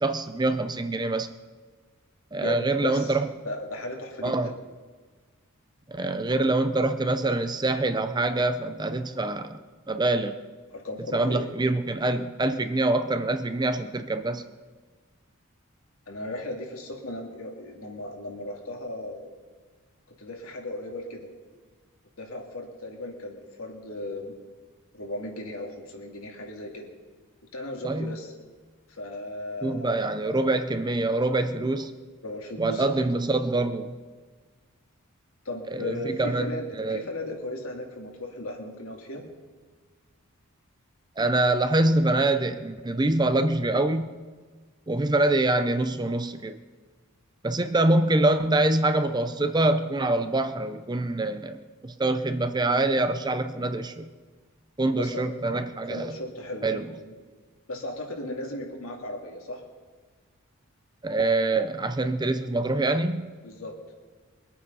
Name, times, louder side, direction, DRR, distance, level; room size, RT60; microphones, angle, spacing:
voice 1, 0.0-1.3 2.3-3.3 4.2-4.5 5.9-9.6 9.9-10.4 11.1-14.4 27.8-28.2 29.6-31.9 32.6-33.9 35.7-36.5 36.8-37.0 41.2-44.1 44.9-46.6 47.4-54.1 54.8-56.2 56.6-56.9 61.0-63.3, right 2 dB, 20° right, 9 dB, 0.6 m, -25 dB
voice 2, 2.4-3.2 3.4-4.5 10.7-11.5 16.1-19.3 20.2-21.3 22.2-24.3 24.9-26.9 27.5-28.3 28.9-30.1 32.2-32.9 35.4-39.2 54.9-55.2 55.9-57.1 57.7-59.6 63.4-63.7, left 1 dB, 70° left, 1 dB, 2.6 m, -36 dB
22.5 x 8.6 x 5.5 m, 1.4 s
head